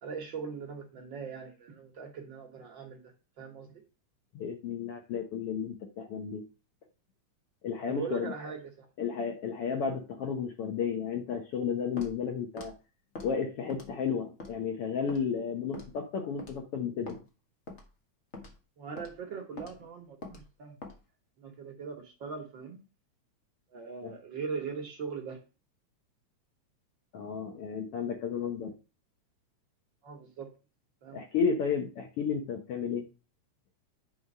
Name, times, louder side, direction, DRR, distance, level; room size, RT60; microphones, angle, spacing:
voice 1, 0.0-3.0 3.4-3.8 7.9-8.9 18.8-20.8 21.4-22.8 23.7-25.4 30.0-30.5 31.0-31.2, right 5 dB, 60° right, 3 dB, 1.3 m, -40 dB
voice 2, 4.3-6.4 7.6-8.3 9.0-12.7 13.2-17.2 24.0-24.1 27.1-28.7 31.1-33.1, left 6 dB, 65° left, 3 dB, 1.6 m, -32 dB
Walk footsteps, 12.0-12.2 12.6-12.7 13.1-13.3 13.7-14.0 14.4-14.5 15.1-15.2 15.7-16.0 16.4-16.6 17.1-17.2 17.7-17.9 18.3-18.6 19.0-19.1 19.6-19.7 20.2-20.4 20.8-21.0, left 2 dB, 80° left, 0.6 m, -43 dB
9.8 x 3.4 x 5.3 m, 0.32 s
omnidirectional pair, 3.5 m